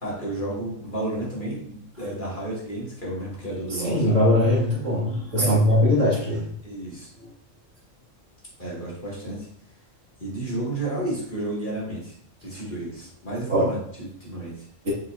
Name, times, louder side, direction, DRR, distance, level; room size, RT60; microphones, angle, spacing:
voice 1, 0.0-4.2 5.3-5.6 6.6-7.1 8.6-9.5 10.2-12.1 12.4-14.7, right 1 dB, 35° left, -7 dB, 3.0 m, -31 dB
voice 2, 3.7-6.5 7.2-7.3 13.5-13.7 14.8-14.9, left 1 dB, 65° right, -5 dB, 2.7 m, -21 dB
7.2 x 6.7 x 2.8 m, 0.67 s
omnidirectional pair, 1.4 m